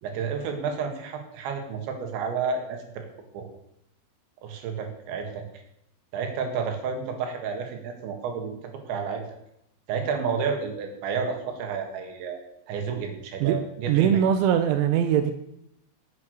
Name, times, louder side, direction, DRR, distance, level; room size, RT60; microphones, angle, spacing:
voice 1, 0.0-3.1 3.3-3.5 4.4-5.4 6.1-8.6 8.9-9.2 9.9-12.4 12.7-14.2, right 5 dB, 65° right, 4 dB, 4.0 m, -31 dB
voice 2, 13.9-15.3, right 9 dB, 85° right, 8 dB, 2.9 m, -21 dB
13.0 x 8.6 x 6.5 m, 0.80 s
omnidirectional pair, 6.0 m